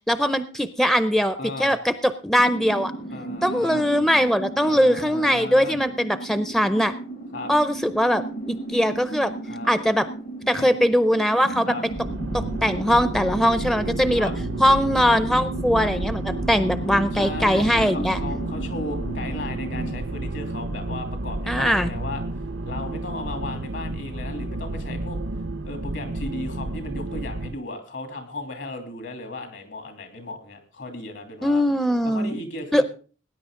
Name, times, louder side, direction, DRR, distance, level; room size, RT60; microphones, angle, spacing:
voice 1, 0.1-2.9 3.4-6.9 7.5-9.3 9.6-10.1 10.5-11.7 12.3-14.3 14.6-18.2 21.5-21.9 31.4-32.4 32.7-32.8, equal, ahead, 12 dB, 0.5 m, -21 dB
voice 2, 1.4-1.8 3.1-3.9 4.6-5.8 7.3-7.5 9.4-9.7 10.5-10.7 11.6-11.8 14.1-14.3 17.2-22.2 22.7-25.2 25.6-31.7 32.0-32.8, left 2 dB, 70° left, 5 dB, 2.9 m, -35 dB
sound 1, 2.4-20.0, right 2 dB, 50° left, 1.1 m, -35 dB
sound 2, 11.9-27.6, right 2 dB, 90° right, 0.9 m, -31 dB
18.5 x 9.9 x 3.7 m, 0.38 s
head